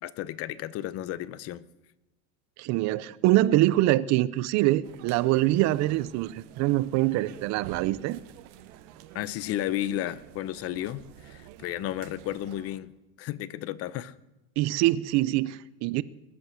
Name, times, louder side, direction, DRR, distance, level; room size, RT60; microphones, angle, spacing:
voice 1, 0.0-1.7 9.1-12.9 13.2-14.1, left 13 dB, 40° left, 0.7 m, -33 dB
voice 2, 2.6-8.2 14.6-16.0, right 16 dB, 45° right, 0.6 m, -24 dB
sound 1, 4.8-12.8, right 11 dB, 65° right, 1.4 m, -48 dB
20.5 x 11.0 x 6.4 m
supercardioid pair, 145°, 39 cm